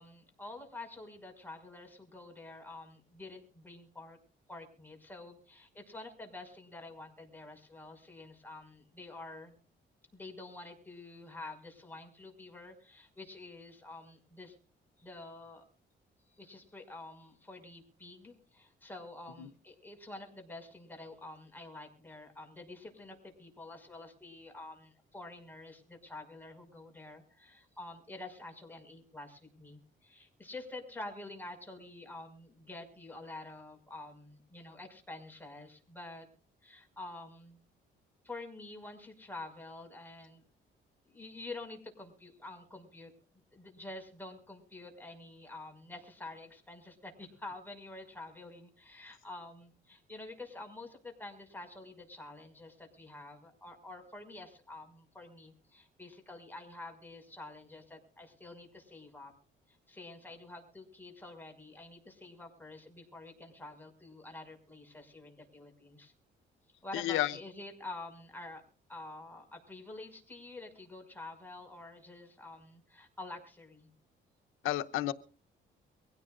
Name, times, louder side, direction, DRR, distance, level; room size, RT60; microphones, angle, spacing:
voice 1, 0.0-4.2 4.5-9.6 10.1-14.6 15.0-15.6 16.3-36.3 36.6-37.6 38.2-40.4 41.0-43.1 43.5-59.3 59.7-66.1 66.8-68.6 68.9-73.9, left 2 dB, 10° left, 2 dB, 5.7 m, -48 dB
voice 2, 66.9-67.4 74.6-75.1, left 14 dB, 85° left, 11 dB, 0.9 m, -31 dB
24.0 x 16.5 x 2.5 m, 0.39 s
cardioid pair, 90°, 20 cm